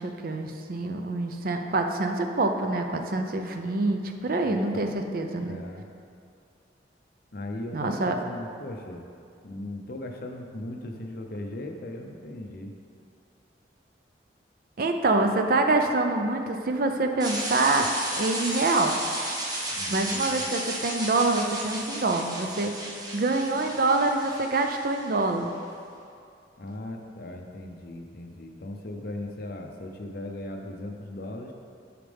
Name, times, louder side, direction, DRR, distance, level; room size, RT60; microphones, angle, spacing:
voice 1, 0.0-5.6 7.7-8.2 14.8-17.9 18.2-19.0 19.9-22.7 23.1-25.5, right 2 dB, 55° right, 5 dB, 0.5 m, -26 dB
voice 2, 4.4-5.0 5.4-5.8 7.3-9.0 9.4-12.7 19.7-20.4 26.6-31.5, left 1 dB, 55° left, 3 dB, 0.7 m, -38 dB
sound 1, 17.2-25.2, right 1 dB, 25° right, 1.1 m, -34 dB
8.8 x 5.1 x 3.4 m, 2.5 s
head